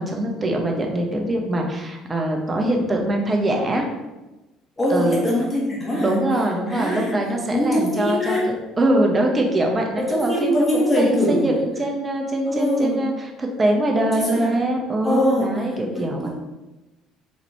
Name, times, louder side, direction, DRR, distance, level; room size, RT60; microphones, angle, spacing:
voice 1, 0.0-3.9 4.9-5.2 6.0-13.1 13.4-16.3, right 1 dB, 25° right, 1 dB, 0.7 m, -23 dB
voice 2, 4.8-6.2 6.7-7.2 7.5-8.5 10.0-11.5 12.5-13.0 14.1-14.5 15.0-15.7 15.9-16.3, left 1 dB, 25° left, -4 dB, 1.1 m, -23 dB
4.1 x 2.5 x 3.2 m, 1.1 s
figure-of-eight pair, 55°, 0 cm